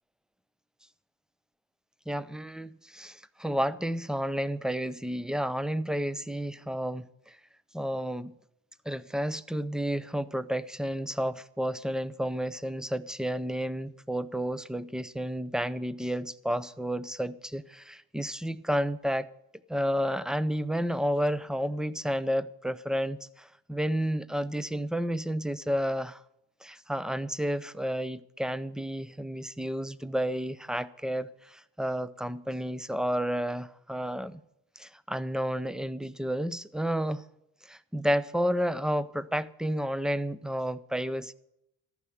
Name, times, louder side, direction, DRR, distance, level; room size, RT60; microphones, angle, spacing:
voice 1, 2.1-7.4 7.7-8.3 8.9-19.3 19.7-26.2 26.6-34.4 34.8-37.2 37.6-41.3, equal, ahead, 0.5 m, -31 dB
14.0 x 5.9 x 9.4 m
supercardioid pair, 55°, 50 cm